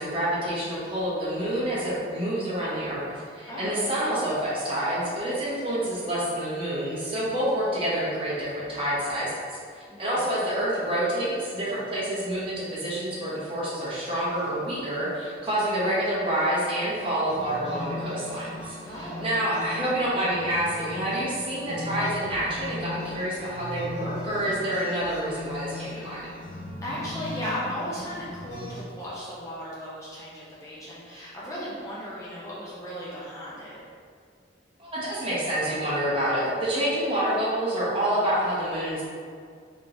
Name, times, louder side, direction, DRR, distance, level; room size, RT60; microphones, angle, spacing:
voice 1, 0.0-9.3 9.7-26.3 34.8-39.0, right 1 dB, 30° right, -9 dB, 0.9 m, -28 dB
voice 2, 3.5-3.8 9.9-10.3 18.9-19.3 26.8-33.8, equal, 15° left, -8 dB, 0.5 m, -36 dB
sound 1, 14.3-14.9 15.2-15.3 15.6-15.8 17.0-28.8, left 1 dB, 65° left, 0.8 m, -38 dB
3.5 x 3.0 x 2.6 m, 2.1 s
head